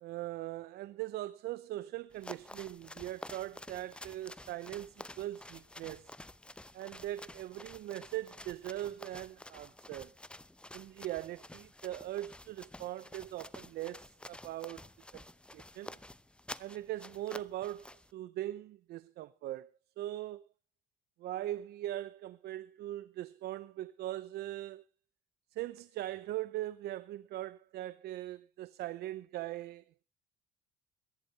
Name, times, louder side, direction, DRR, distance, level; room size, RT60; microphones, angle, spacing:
voice 1, 0.0-6.1 6.7-10.1 10.7-14.8 15.1-15.2 15.5-15.9 16.6-19.7 20.0-20.4 21.2-24.8 25.5-30.0, right 14 dB, 70° right, 0.7 m, -40 dB
sound 1, 2.1-18.1, left 1 dB, 5° left, 0.7 m, -50 dB
22.0 x 11.5 x 4.1 m
cardioid pair, 110°, 17 cm